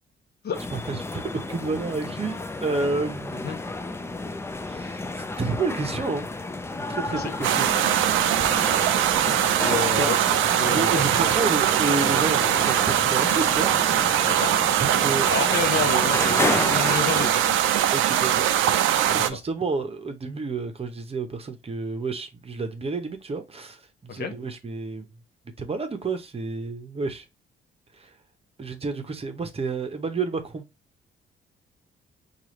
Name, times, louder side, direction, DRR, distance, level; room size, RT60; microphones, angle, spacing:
sound 1, 0.5-17.3, left 2 dB, 15° left, 0.4 m, -32 dB
voice 1, 0.7-3.5 4.6-6.3 6.8-7.7 10.0-14.0 14.8-15.3 16.3-16.8 17.9-25.0 25.6-27.3 27.9-28.1 28.6-30.6, right 3 dB, 30° right, 0.8 m, -30 dB
sound 2, 7.4-19.3, right 11 dB, 80° right, 0.4 m, -22 dB
voice 2, 9.6-10.2 10.6-11.5 14.3-14.6 15.3-17.6 19.1-19.4 24.2-24.3, left 6 dB, 55° left, 0.8 m, -30 dB
4.7 x 2.4 x 3.0 m
cardioid pair, 90°, 20 cm